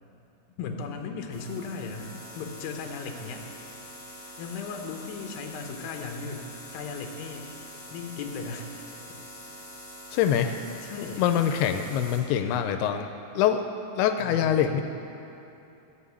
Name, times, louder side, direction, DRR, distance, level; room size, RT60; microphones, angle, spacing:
voice 1, 0.6-3.4 4.4-6.5 6.7-7.5 7.9-8.7 10.8-11.2 14.2-14.8, left 5 dB, 75° left, 3 dB, 2.6 m, -37 dB
sound 1, 1.3-12.2, left 1 dB, 35° left, 2.8 m, -45 dB
voice 2, 10.1-10.6 11.0-13.1 13.4-13.6 13.9-14.8, left 9 dB, 90° left, 7 dB, 2.5 m, -24 dB
14.5 x 5.6 x 8.2 m, 2.9 s
omnidirectional pair, 4.5 m